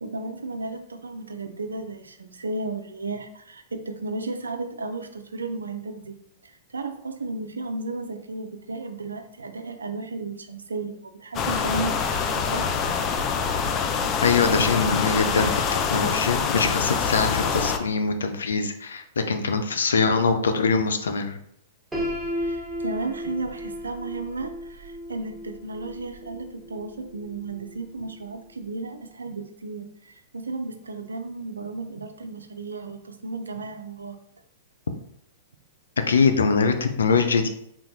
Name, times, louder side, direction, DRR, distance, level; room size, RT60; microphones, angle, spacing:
voice 1, 0.0-6.2 6.4-12.7 22.3-34.2, right 3 dB, 85° right, 8 dB, 0.5 m, -34 dB
sound 1, 11.3-17.8, left 6 dB, 30° left, 0.5 m, -25 dB
voice 2, 14.2-21.4 36.1-37.5, left 5 dB, 80° left, 7 dB, 0.5 m, -23 dB
Piano, 21.9-27.8, equal, 5° right, 1.3 m, -34 dB
4.4 x 3.6 x 2.7 m, 0.72 s
hypercardioid pair, 110°, 0 cm